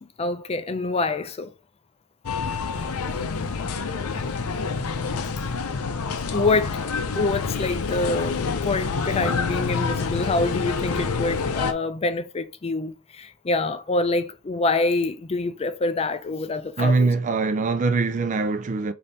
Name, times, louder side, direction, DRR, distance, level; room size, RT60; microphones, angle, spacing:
voice 1, 0.0-1.5 6.3-6.8 7.2-17.1, left 3 dB, 25° left, 0.4 m, -26 dB
sound 1, 2.2-11.7, left 4 dB, 70° left, 0.6 m, -27 dB
voice 2, 16.8-18.9, right 3 dB, 35° right, 0.4 m, -22 dB
3.4 x 2.8 x 4.0 m
head